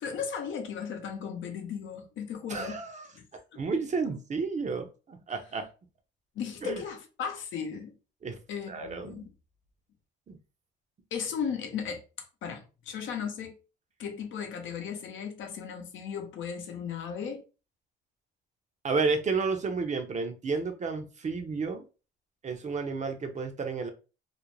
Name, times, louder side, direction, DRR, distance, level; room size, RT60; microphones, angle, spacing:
voice 1, 0.0-2.8 3.1-3.2 6.4-7.9 8.5-9.3 11.1-13.6 14.0-17.4, left 7 dB, 75° left, 0.6 m, -36 dB
voice 2, 2.5-3.1 3.6-5.7 6.6-6.8 8.2-8.4 8.7-9.3 10.3-10.4 18.8-21.8 22.4-23.9, right 4 dB, 35° right, 0.6 m, -31 dB
2.5 x 2.0 x 3.0 m
cardioid pair, 90°, 20 cm